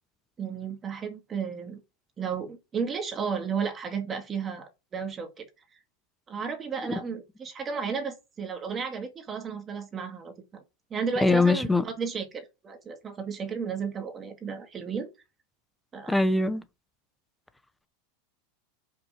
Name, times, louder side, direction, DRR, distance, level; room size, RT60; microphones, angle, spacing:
voice 1, 0.4-1.8 2.2-5.5 6.3-10.6 10.9-15.1 15.9-16.2, right 6 dB, 20° right, 1.8 m, -33 dB
voice 2, 11.2-11.8 16.1-16.6, left 2 dB, 5° left, 0.7 m, -22 dB
6.8 x 5.8 x 5.7 m
supercardioid pair, 155°, 0 cm